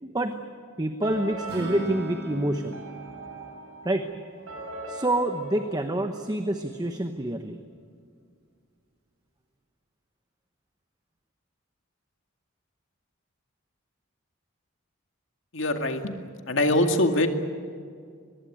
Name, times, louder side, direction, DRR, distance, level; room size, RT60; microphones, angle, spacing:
voice 1, 0.0-0.4 0.8-2.8 3.8-4.1 4.9-7.6, right 1 dB, 20° right, 7 dB, 1.0 m, -27 dB
sound 1, 1.0-6.8, right 2 dB, 90° right, 6.6 m, -41 dB
Acoustic guitar / Strum, 1.5-4.7, right 2 dB, 55° right, 8.0 m, -39 dB
voice 2, 15.5-16.2 16.5-17.3, left 1 dB, 65° left, 5 dB, 2.2 m, -23 dB
23.5 x 20.5 x 9.3 m, 2.2 s
head